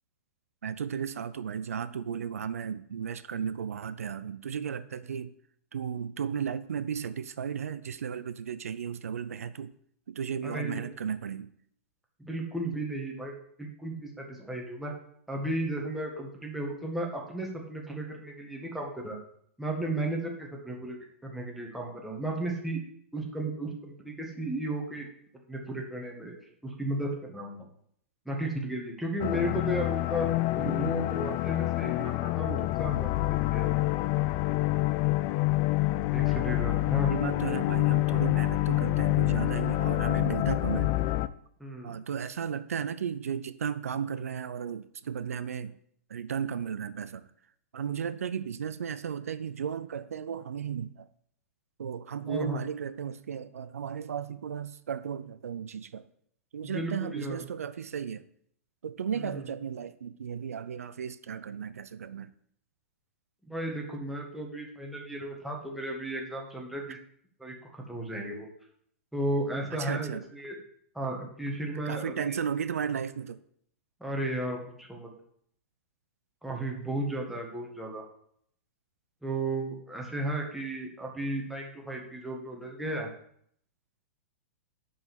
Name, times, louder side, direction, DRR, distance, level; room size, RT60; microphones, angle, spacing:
voice 1, 0.6-5.3 5.7-9.7 10.1-11.5 37.1-41.0 41.8-45.7 46.1-47.3 47.7-51.1 51.8-56.1 56.5-58.2 58.8-62.3 69.7-70.2 71.7-73.4, right 7 dB, 90° right, 14 dB, 0.4 m, -35 dB
voice 2, 10.4-10.8 12.2-13.3 13.6-14.9 15.3-19.2 19.6-21.0 21.2-22.8 23.1-25.1 25.5-26.3 26.6-27.7 28.2-30.3 30.5-33.7 36.1-37.1 41.6-42.0 52.3-52.6 56.6-57.4 59.1-59.5 63.4-67.0 67.4-68.5 69.1-70.6 70.9-72.4 74.0-75.1 76.4-78.0 79.2-83.1, right 1 dB, ahead, -1 dB, 1.5 m, -34 dB
sound 1, 29.2-41.3, left 19 dB, 40° left, 0.3 m, -27 dB
5.3 x 5.2 x 6.0 m, 0.67 s
hypercardioid pair, 125°, 8 cm